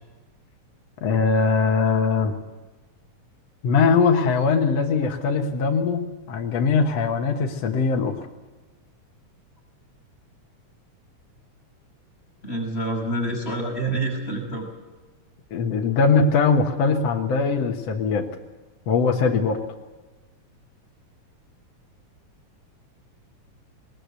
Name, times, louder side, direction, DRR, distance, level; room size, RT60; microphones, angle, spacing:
voice 1, 1.0-2.3 3.6-8.3 15.5-18.2 18.9-19.6, left 5 dB, 60° left, 3 dB, 2.3 m, -21 dB
voice 2, 12.4-14.7, right 2 dB, 20° left, 0 dB, 5.9 m, -27 dB
20.5 x 20.0 x 8.2 m, 1.2 s
omnidirectional pair, 3.3 m